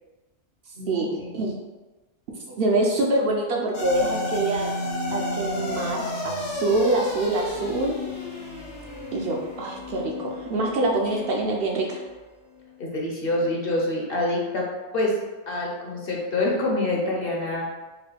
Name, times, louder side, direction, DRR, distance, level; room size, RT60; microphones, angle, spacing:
voice 1, 0.8-1.3 12.8-14.6 14.9-15.1 15.5-17.7, left 2 dB, 55° left, -2 dB, 0.8 m, -26 dB
voice 2, 2.3-4.7 5.1-8.0 9.1-12.0, right 2 dB, 60° right, -1 dB, 0.7 m, -25 dB
sound 1, 3.7-12.2, left 1 dB, 75° left, 1.1 m, -32 dB
4.7 x 2.2 x 3.3 m, 1.2 s
omnidirectional pair, 1.2 m